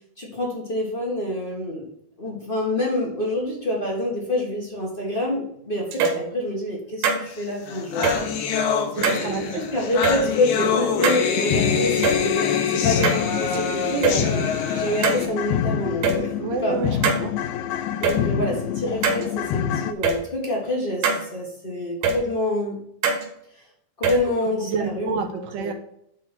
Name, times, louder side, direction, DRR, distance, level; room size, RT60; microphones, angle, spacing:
voice 1, 0.2-1.8 2.2-8.2 8.9-13.1 13.4-14.4 14.8-16.3 16.6-16.8 18.0-22.8 24.0-25.7, left 1 dB, 35° left, -2 dB, 0.8 m, -27 dB
sound 1, 5.9-6.2 7.0-7.2 8.0-8.2 9.0-9.2 10.0-10.2 11.0-11.2 12.0-12.2 13.0-13.6 14.0-14.2 15.0-15.2 16.0-16.2 17.0-17.2 18.0-18.2 19.0-19.2 20.0-20.2 21.0-21.2 22.0-22.2 23.0-23.2 24.0-24.2, right 4 dB, 70° right, 3.4 m, -21 dB
sound 2, 7.4-7.5 7.7-15.3, left 6 dB, 65° left, 2.7 m, -25 dB
voice 2, 8.9-9.6 14.2-14.3 16.4-17.3 24.6-25.7, right 5 dB, 85° right, 4 dB, 3.3 m, -29 dB
sound 3, 9.9-10.0 10.4-10.5 10.9-19.9, left 9 dB, 80° left, 2.4 m, -27 dB
11.0 x 4.3 x 5.3 m, 0.73 s
omnidirectional pair, 4.5 m